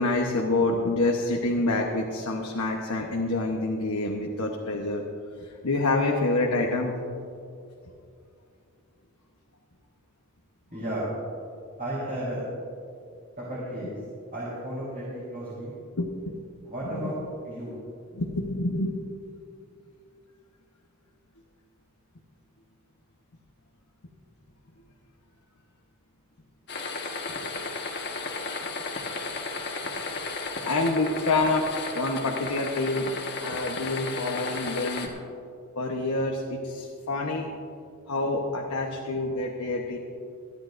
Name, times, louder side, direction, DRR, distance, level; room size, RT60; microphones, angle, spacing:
voice 1, 0.0-5.0 5.4-6.9 16.0-16.3 16.9-17.1 18.1-18.9 30.6-33.1 33.4-35.1 35.8-37.5 38.1-40.0, left 2 dB, 90° left, 0 dB, 1.1 m, -27 dB
voice 2, 10.7-11.1 11.8-12.4 13.4-14.0 14.3-15.7 16.6-17.2 17.4-17.7, right 1 dB, 40° right, -9 dB, 4.0 m, -33 dB
sound 1, 26.7-35.1, left 3 dB, 50° left, 1.5 m, -34 dB
28.0 x 10.5 x 2.6 m, 2.4 s
head